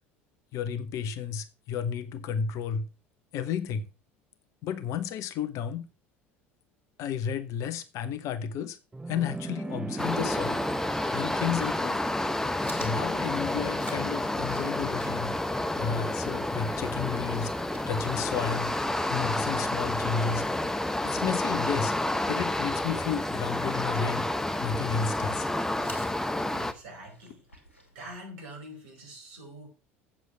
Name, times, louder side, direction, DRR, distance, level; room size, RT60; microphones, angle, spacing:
voice 1, 0.5-2.9 3.3-3.9 4.6-5.9 7.0-8.8 9.1-10.6 11.1-12.0 12.8-15.4 15.7-17.5 17.9-18.7 19.1-20.4 21.0-21.9 22.3-24.3 24.6-25.5, left 7 dB, 50° left, 1.1 m, -32 dB
sound 1, 8.9-11.9, right 3 dB, 10° right, 0.4 m, -37 dB
sound 2, 10.0-26.7, left 1 dB, 5° left, 0.9 m, -30 dB
Chewing mastication, 12.5-28.1, equal, 90° left, 2.6 m, -51 dB
voice 2, 26.5-27.5 27.9-29.7, right 1 dB, 65° right, 4.6 m, -45 dB
8.2 x 7.5 x 5.8 m
figure-of-eight pair, 65°, 7 cm